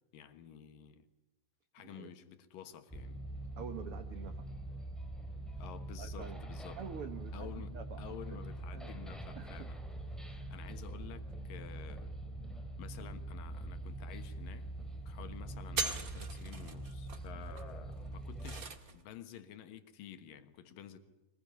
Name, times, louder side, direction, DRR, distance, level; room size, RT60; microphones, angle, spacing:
voice 1, 0.1-1.1 1.7-3.2 5.6-6.8 7.3-9.8 10.5-12.2 12.8-14.7 15.1-21.0, left 9 dB, 70° left, 3.0 m, -51 dB
sound 1, 2.9-18.6, right 1 dB, ahead, 2.4 m, -44 dB
voice 2, 3.6-4.5 6.0-6.4 6.8-8.5 8.7-9.0 9.3-9.7 10.2-10.6, right 7 dB, 70° right, 1.3 m, -47 dB
sound 2, 13.8-13.9 14.2-14.6 15.0-15.3 15.6-19.0, right 3 dB, 40° right, 1.4 m, -41 dB
24.0 x 21.0 x 9.9 m
omnidirectional pair, 4.2 m